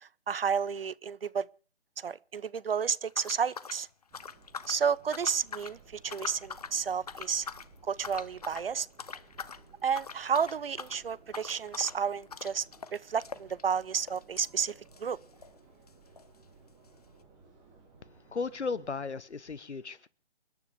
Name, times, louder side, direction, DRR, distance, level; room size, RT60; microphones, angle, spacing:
voice 1, 0.0-1.5 2.0-3.9 4.7-7.5 7.9-8.9 9.8-12.6 12.9-15.2, right 6 dB, 55° right, 0.6 m, -31 dB
sound 1, 3.1-4.8 5.1-5.8 6.1-6.8 7.1-7.7 8.0-8.7 9.0-9.6 9.9-15.6 15.9-16.0 16.2-16.3 16.9-17.0, left 5 dB, 35° left, 0.6 m, -43 dB
Subway metro underground, 4.1-19.1, right 4 dB, 20° right, 4.0 m, -58 dB
voice 2, 18.0-20.1, left 4 dB, 80° left, 1.2 m, -36 dB
28.5 x 9.8 x 3.5 m
figure-of-eight pair, 155°, 34 cm